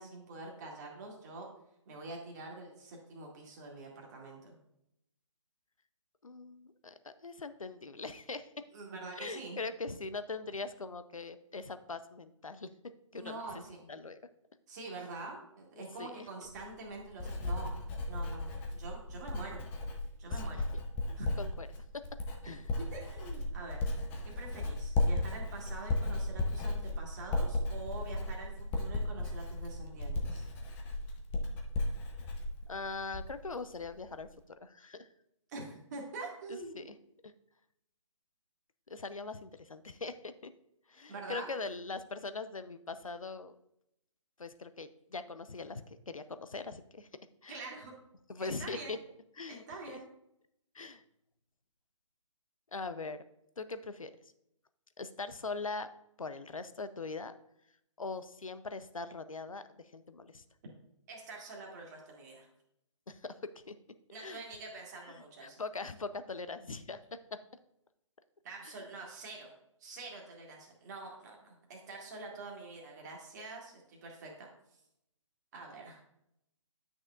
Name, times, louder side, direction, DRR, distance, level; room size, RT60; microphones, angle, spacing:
voice 1, 0.0-1.5 1.9-4.5 8.7-9.6 13.1-13.9 14.7-19.6 20.2-20.7 21.2-21.4 22.9-23.8 24.2-30.5 35.5-36.9 41.1-41.5 47.5-47.9 48.4-49.0 49.5-50.1 61.1-62.5 64.1-65.6 68.4-69.5 69.8-74.5 75.5-76.0, right 3 dB, 30° right, -1 dB, 1.8 m, -46 dB
voice 2, 6.2-8.6 9.2-13.4 13.9-14.2 16.0-16.1 21.1-21.7 21.9-22.0 22.4-22.6 32.7-35.1 36.7-36.9 38.9-40.5 40.9-43.6 44.4-47.1 47.4-47.6 48.3-49.0 49.4-50.0 50.7-51.0 52.7-53.2 53.6-54.1 55.0-55.9 56.2-57.4 58.0-60.4 63.1-63.7 64.2-64.4 65.4-67.0 67.3-67.4 68.6-68.7, left 3 dB, 85° left, 12 dB, 0.6 m, -41 dB
Writing, 16.5-33.5 33.8-34.2, left 2 dB, 10° left, 0.5 m, -35 dB
10.0 x 6.2 x 2.4 m, 0.80 s
figure-of-eight pair, 145°, 17 cm